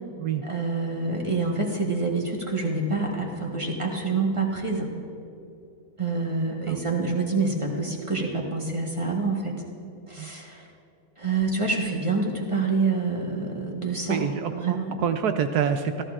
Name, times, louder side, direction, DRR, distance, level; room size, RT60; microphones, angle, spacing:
voice 1, 0.4-4.9 6.0-9.5 10.1-10.7 11.2-15.0, right 3 dB, 20° right, -1 dB, 1.0 m, -27 dB
voice 2, 14.1-16.0, right 7 dB, 75° right, 8 dB, 0.9 m, -26 dB
26.0 x 14.0 x 2.4 m, 2.7 s
omnidirectional pair, 2.2 m